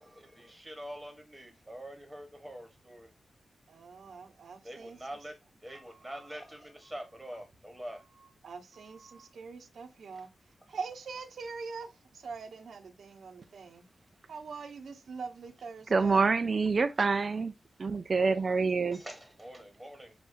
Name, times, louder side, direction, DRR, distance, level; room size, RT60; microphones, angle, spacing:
voice 1, 0.0-3.1 4.6-8.3 8.7-9.3 10.1-10.2 18.9-20.1, equal, 5° right, 1.4 m, -45 dB
voice 2, 3.7-5.0 8.4-13.8 14.3-16.2, right 5 dB, 75° right, 1.0 m, -43 dB
voice 3, 15.9-17.5 17.8-19.0, right 4 dB, 50° right, 0.5 m, -26 dB
7.4 x 2.6 x 2.6 m
cardioid pair, 85°, 0 cm